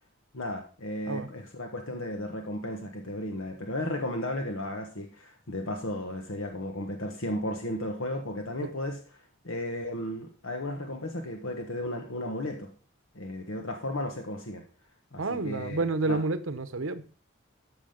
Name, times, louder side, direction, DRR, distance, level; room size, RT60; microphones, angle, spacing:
voice 1, 0.3-9.0 9.4-12.7 13.1-14.6 15.1-16.2, left 1 dB, 80° left, 4 dB, 1.4 m, -34 dB
voice 2, 15.2-17.0, right 3 dB, 75° right, 12 dB, 1.0 m, -29 dB
13.5 x 6.2 x 5.2 m, 0.39 s
head